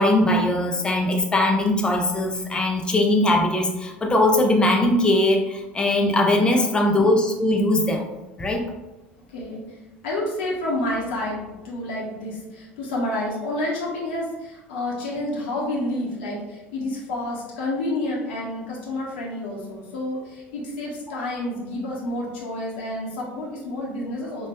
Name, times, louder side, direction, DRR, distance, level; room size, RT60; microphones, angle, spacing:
voice 1, 0.0-8.1 8.4-8.6, left 1 dB, 15° left, 2 dB, 0.5 m, -20 dB
voice 2, 6.4-6.9 9.3-9.8 10.0-24.5, left 1 dB, 65° left, -4 dB, 0.7 m, -29 dB
4.1 x 2.3 x 2.2 m, 1.1 s
figure-of-eight pair, 65°, 6 cm